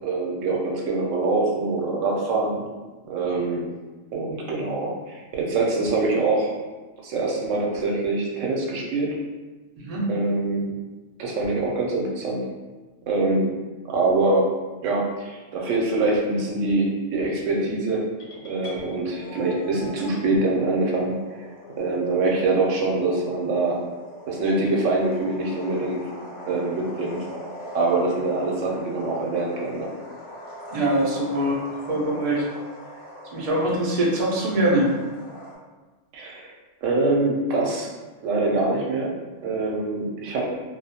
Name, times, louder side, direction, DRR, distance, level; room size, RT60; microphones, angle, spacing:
voice 1, 0.0-2.6 3.1-3.7 4.1-6.5 7.0-9.2 10.1-10.8 11.2-12.5 13.1-13.5 13.9-14.5 14.8-18.1 18.4-21.1 21.8-23.8 24.3-26.0 26.5-27.2 27.7-29.9 36.1-36.5 36.8-37.9 38.2-39.1 39.4-40.5, right 2 dB, 80° right, -1 dB, 0.9 m, -24 dB
sound 1, 18.2-20.2, left 3 dB, 70° left, 0.8 m, -42 dB
sound 2, 19.2-35.6, equal, 40° left, 0.5 m, -42 dB
voice 2, 30.7-31.6 31.9-32.4 33.3-34.9, right 1 dB, 55° right, -4 dB, 0.4 m, -23 dB
2.3 x 2.1 x 2.7 m, 1.2 s
omnidirectional pair, 1.3 m